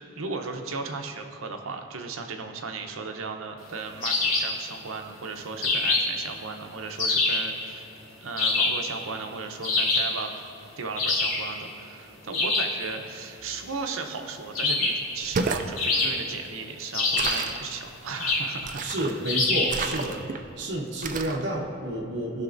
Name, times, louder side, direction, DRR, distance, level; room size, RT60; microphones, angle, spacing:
voice 1, 0.2-7.9 8.2-10.3 10.8-19.2, right 4 dB, 75° right, 4 dB, 0.8 m, -36 dB
sound 1, 4.0-4.6 5.6-6.2 7.0-7.5 8.4-8.9 9.6-10.2 11.0-11.5 12.3-12.8 14.6-15.1 15.8-16.4 16.9-17.5 18.2-18.6 19.3-19.8, left 3 dB, 85° left, 1.5 m, -25 dB
sound 2, 15.2-15.7 17.1-17.6 18.6-19.2 19.7-20.4 21.0-21.4, right 4 dB, 40° right, 0.4 m, -31 dB
voice 2, 18.8-20.2 20.6-22.4, right 1 dB, 55° right, -2 dB, 1.1 m, -30 dB
17.0 x 5.9 x 2.6 m, 2.6 s
head